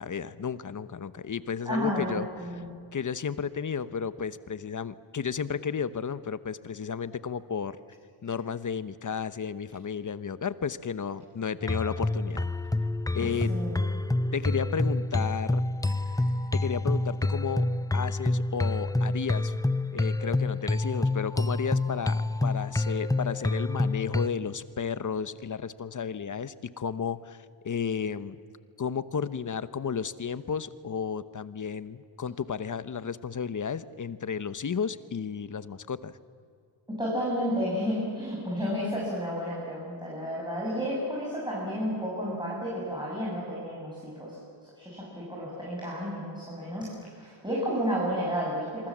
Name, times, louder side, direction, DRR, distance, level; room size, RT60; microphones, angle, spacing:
voice 1, 0.0-2.3 2.9-7.8 8.2-12.5 13.1-13.5 14.3-15.6 16.5-17.7 17.9-19.5 19.9-28.4 28.8-36.2, left 6 dB, 40° left, 14 dB, 1.0 m, -33 dB
voice 2, 1.6-2.7 13.2-13.8 36.9-48.9, equal, 10° right, -5 dB, 7.0 m, -32 dB
sound 1, 11.6-24.3, left 2 dB, 10° left, 0.6 m, -28 dB
27.0 x 24.0 x 7.4 m, 2.3 s
wide cardioid pair, 120°, 49 cm